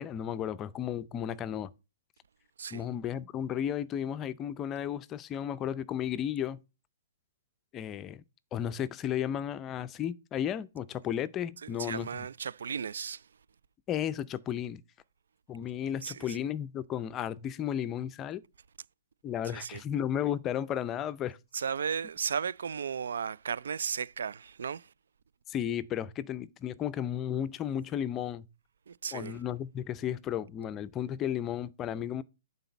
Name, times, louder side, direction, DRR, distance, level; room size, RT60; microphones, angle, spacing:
voice 1, 0.0-1.7 2.7-6.6 7.7-8.2 8.5-12.1 13.9-14.8 15.5-18.4 19.2-21.4 25.5-28.5 29.1-32.2, left 10 dB, 20° left, 0.5 m, -34 dB
voice 2, 11.6-13.3 16.0-16.4 19.4-19.8 21.5-24.9 28.9-29.4, right 7 dB, 75° right, 0.4 m, -35 dB
9.1 x 4.0 x 7.0 m
hypercardioid pair, 145°, 0 cm